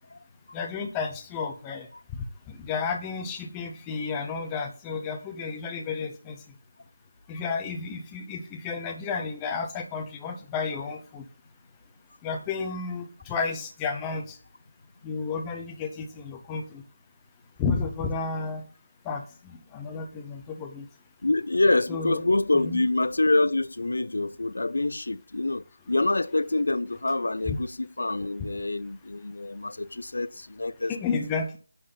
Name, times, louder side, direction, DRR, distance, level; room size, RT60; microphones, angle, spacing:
voice 1, 0.5-1.9 2.5-6.4 7.3-11.2 12.2-14.4 15.0-16.8 17.6-18.6 19.0-20.9 21.9-22.2 22.5-22.8 30.9-31.6, left 5 dB, 10° left, 0.8 m, -32 dB
voice 2, 21.2-30.9, left 2 dB, 80° left, 0.5 m, -26 dB
9.9 x 4.1 x 5.7 m
figure-of-eight pair, 175°, 0 cm